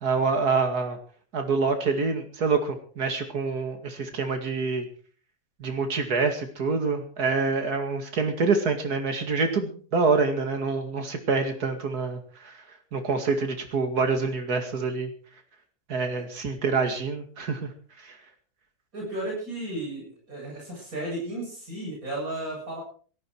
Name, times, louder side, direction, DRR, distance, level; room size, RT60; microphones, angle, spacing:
voice 1, 0.0-1.0 1.3-4.9 5.6-12.2 12.4-12.6 12.9-15.1 15.9-17.7 18.0-18.2, right 4 dB, 85° right, 6 dB, 2.7 m, -26 dB
voice 2, 18.9-22.8, right 1 dB, 65° right, -3 dB, 8.7 m, -34 dB
17.5 x 14.5 x 4.7 m, 0.42 s
omnidirectional pair, 1.6 m